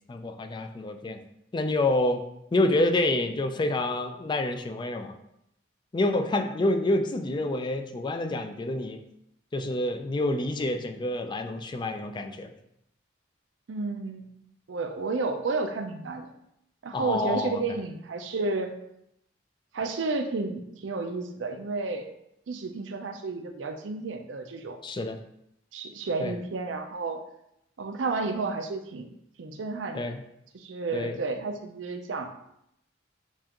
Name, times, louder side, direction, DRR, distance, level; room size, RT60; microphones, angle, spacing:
voice 1, 0.1-1.2 1.5-2.2 2.5-5.1 5.9-9.0 9.5-12.5 16.9-17.6 24.8-25.2 26.2-26.3 29.9-30.2 30.9-31.2, left 2 dB, 25° left, 6 dB, 0.3 m, -27 dB
voice 2, 13.7-14.2 14.7-16.3 16.8-18.7 19.7-22.1 22.5-24.8 25.7-27.2 27.8-29.1 29.4-30.2 30.5-32.3, right 3 dB, 80° right, 6 dB, 0.5 m, -31 dB
7.1 x 2.5 x 2.9 m, 0.78 s
head